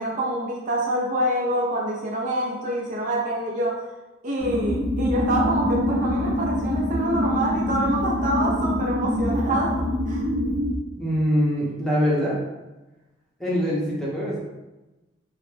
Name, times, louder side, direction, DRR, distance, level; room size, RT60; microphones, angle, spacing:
voice 1, 0.0-3.8 4.2-10.3, right 1 dB, 40° right, -2 dB, 0.4 m, -26 dB
sound 1, 4.4-10.7, left 1 dB, 75° left, 0.9 m, -25 dB
voice 2, 10.9-12.4 13.4-14.4, equal, ahead, -6 dB, 0.7 m, -23 dB
3.1 x 2.0 x 3.1 m, 1.1 s
head